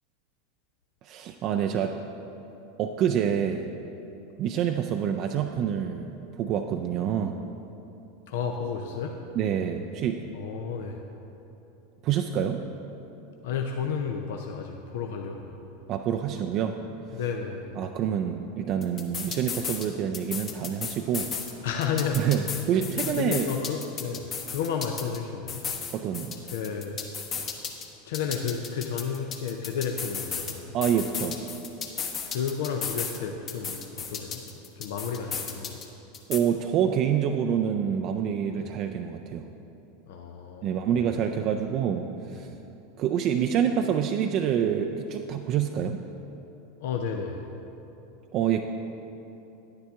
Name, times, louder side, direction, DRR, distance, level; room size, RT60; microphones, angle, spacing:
voice 1, 1.0-2.0 2.8-3.7 4.4-7.4 9.4-10.3 12.0-12.6 15.9-16.8 17.8-21.3 22.1-23.5 25.9-26.4 30.7-31.4 36.3-39.5 40.6-42.5 43.0-46.0 48.3-48.6, right 8 dB, 45° right, 4 dB, 0.4 m, -27 dB
voice 2, 8.3-9.2 10.3-11.0 13.4-15.6 17.1-17.7 21.6-22.5 22.7-25.7 26.5-27.0 28.0-30.7 32.3-35.8 38.5-38.7 40.1-40.9 41.3-41.6 42.3-42.5 46.8-47.5, left 6 dB, 65° left, 3 dB, 0.5 m, -32 dB
sound 1, 18.8-19.9 20.1-21.5 21.8-25.2 25.5-27.9 28.1-30.5 30.8-33.2 33.5-35.9 36.1-36.4, left 6 dB, 35° left, 1.0 m, -34 dB
10.0 x 9.7 x 3.5 m, 3.0 s
hypercardioid pair, 85°, 0 cm